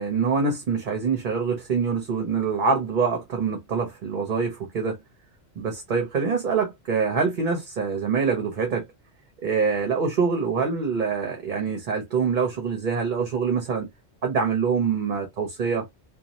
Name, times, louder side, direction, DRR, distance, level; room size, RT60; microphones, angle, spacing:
voice 1, 0.0-5.0 5.6-8.9 9.4-13.9 14.2-15.9, right 5 dB, 50° right, 0.8 m, -25 dB
2.6 x 2.3 x 2.9 m
omnidirectional pair, 1.1 m